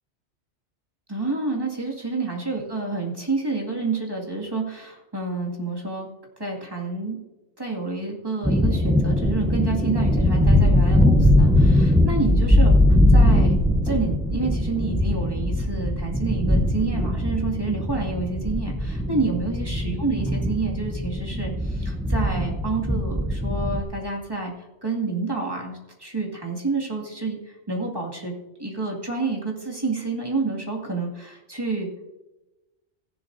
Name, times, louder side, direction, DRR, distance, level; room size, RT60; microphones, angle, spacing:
voice 1, 1.1-6.1 6.4-7.2 7.6-12.7 13.1-24.5 24.8-28.3 28.6-31.9, right 3 dB, 20° right, -2 dB, 2.2 m, -29 dB
sound 1, 8.4-23.8, left 1 dB, 5° right, 0.5 m, -20 dB
15.5 x 11.0 x 2.6 m, 1.0 s
omnidirectional pair, 1.2 m